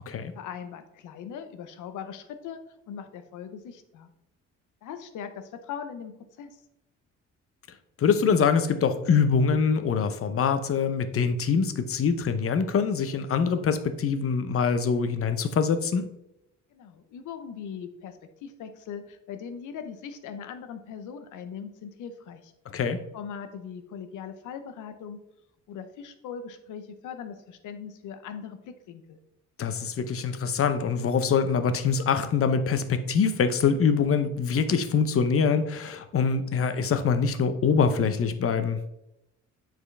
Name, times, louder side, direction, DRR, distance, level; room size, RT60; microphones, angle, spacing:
voice 1, 0.3-2.6 2.9-4.1 4.8-6.6 16.7-22.5 23.1-25.2 25.7-29.2, left 7 dB, 80° left, 9 dB, 0.8 m, -40 dB
voice 2, 8.0-16.1 22.7-23.0 29.6-38.8, left 6 dB, 50° left, 10 dB, 0.7 m, -24 dB
7.3 x 4.5 x 3.3 m, 0.85 s
cardioid pair, 90°, 30 cm